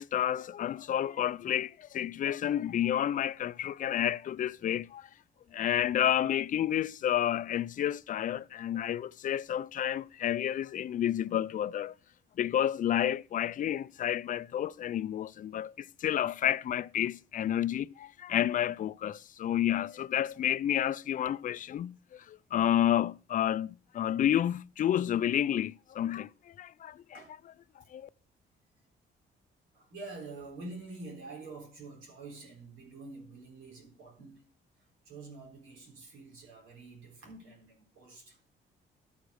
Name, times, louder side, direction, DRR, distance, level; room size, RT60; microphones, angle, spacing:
voice 1, 0.0-5.1 5.5-11.9 12.4-27.2 27.9-28.1, left 11 dB, 40° left, 0.4 m, -30 dB
voice 2, 29.7-34.5 34.8-38.4, right 3 dB, 85° right, 3.9 m, -47 dB
11.5 x 4.8 x 6.3 m
cardioid pair, 90°, 20 cm